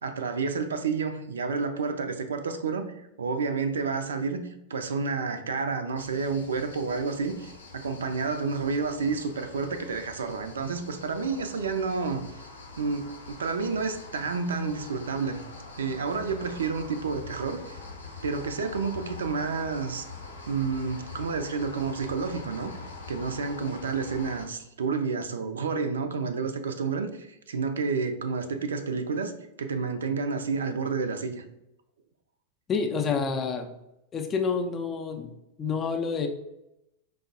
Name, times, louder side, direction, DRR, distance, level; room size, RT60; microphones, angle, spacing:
voice 1, 0.0-12.4 12.8-15.4 15.8-17.8 18.2-20.1 20.5-22.7 23.1-29.3 29.6-31.4, right 4 dB, 65° right, 9 dB, 0.3 m, -30 dB
sound 1, 6.0-24.5, left 3 dB, 75° left, 0.6 m, -44 dB
voice 2, 32.7-33.7 34.1-35.3 35.6-36.3, left 5 dB, 25° left, 4 dB, 0.4 m, -28 dB
4.9 x 2.0 x 2.6 m, 0.84 s
figure-of-eight pair, 90°, 0 cm